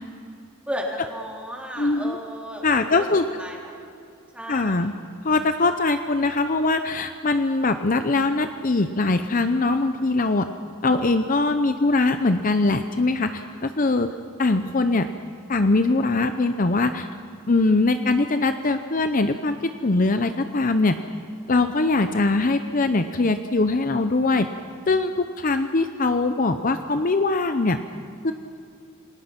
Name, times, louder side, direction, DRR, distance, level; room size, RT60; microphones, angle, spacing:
voice 1, 0.6-2.7 3.0-3.1 3.4-3.7 4.3-4.9, equal, 5° right, -2 dB, 3.5 m, -34 dB
voice 2, 1.8-2.2 2.6-3.3 4.5-4.9 5.2-10.5 10.8-14.1 14.4-15.1 15.5-17.1 17.5-21.0 21.5-24.5 24.9-27.8 28.2-28.3, left 3 dB, 40° left, 9 dB, 0.7 m, -22 dB
28.0 x 19.5 x 6.0 m, 2.5 s
head